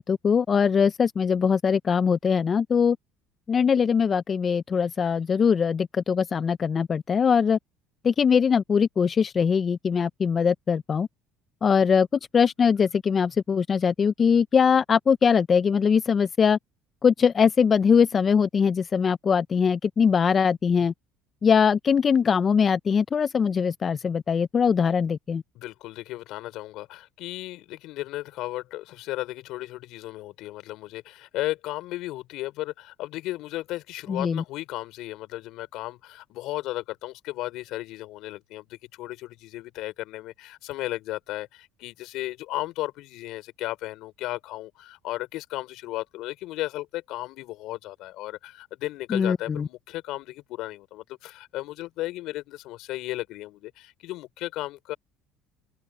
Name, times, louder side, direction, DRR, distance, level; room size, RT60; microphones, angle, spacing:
voice 1, 0.0-3.0 3.5-7.6 8.0-11.1 11.6-16.6 17.0-20.9 21.4-25.4 34.1-34.4 49.1-49.7, left 6 dB, 35° left, 0.5 m, -22 dB
voice 2, 25.5-55.0, left 17 dB, 70° left, 5.0 m, -35 dB
open air
supercardioid pair, 90°, 0 cm